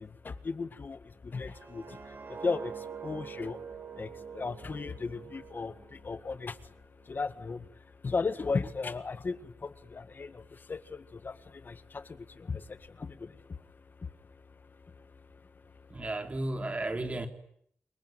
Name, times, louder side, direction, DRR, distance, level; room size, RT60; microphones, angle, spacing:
voice 1, 0.0-2.0 2.3-3.6 4.0-6.7 7.1-7.7 8.0-13.6 14.0-14.1, left 4 dB, 45° left, 1.8 m, -36 dB
sound 1, 1.4-6.4 6.8-7.1, right 6 dB, 50° right, 3.2 m, -45 dB
voice 2, 15.9-17.3, right 2 dB, 30° right, 3.6 m, -33 dB
28.0 x 22.5 x 9.3 m
cardioid pair, 75°, 5 cm